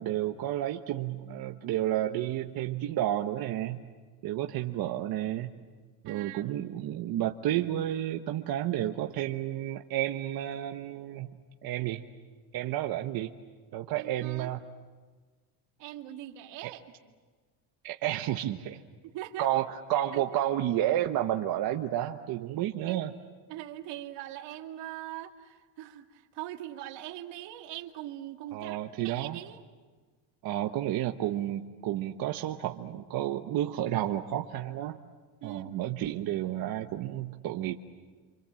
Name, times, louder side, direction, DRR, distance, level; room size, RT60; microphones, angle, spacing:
voice 1, 0.0-3.8 4.2-5.5 6.0-11.3 11.6-12.0 12.5-13.3 13.7-14.6 17.8-18.8 19.4-23.1 28.5-29.4 30.4-35.0 35.4-37.7, right 12 dB, 55° right, 4 dB, 1.1 m, -31 dB
voice 2, 6.1-6.5 14.0-14.5 15.8-16.8 19.0-19.5 20.0-20.4 22.8-23.0 23.5-29.6 35.4-35.8, right 13 dB, 80° right, 4 dB, 2.2 m, -42 dB
28.5 x 25.5 x 7.7 m, 1.4 s
cardioid pair, 160°, 43 cm